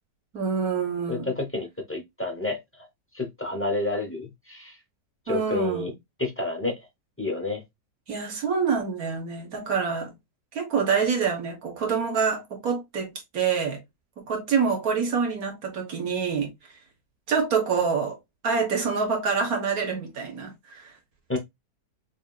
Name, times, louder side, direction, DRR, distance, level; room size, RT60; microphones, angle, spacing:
voice 1, 0.3-1.3 5.3-5.9 8.1-10.1 10.5-13.8 14.2-16.5 17.3-18.2 18.4-20.9, right 5 dB, 55° right, 1.7 m, -26 dB
voice 2, 1.1-2.9 3.1-4.8 5.3-5.9 6.2-6.7 7.2-7.6 21.3-21.4, left 2 dB, 15° left, 0.5 m, -29 dB
6.3 x 2.6 x 2.3 m
omnidirectional pair, 1.8 m